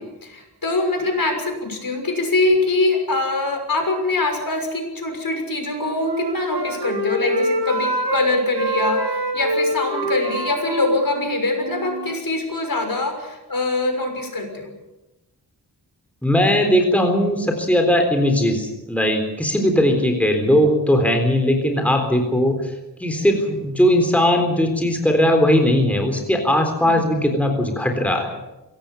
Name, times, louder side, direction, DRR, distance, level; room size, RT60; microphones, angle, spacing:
voice 1, 0.0-14.7 26.8-27.0, left 2 dB, 55° left, 4 dB, 6.4 m, -23 dB
Wind instrument woodwind instrument, 5.5-8.3 8.5-12.2, right 1 dB, 85° right, 6.3 m, -25 dB
voice 2, 16.2-28.3, equal, 5° left, 3 dB, 3.8 m, -19 dB
24.0 x 18.0 x 7.2 m, 0.97 s
wide cardioid pair, 110°, 41 cm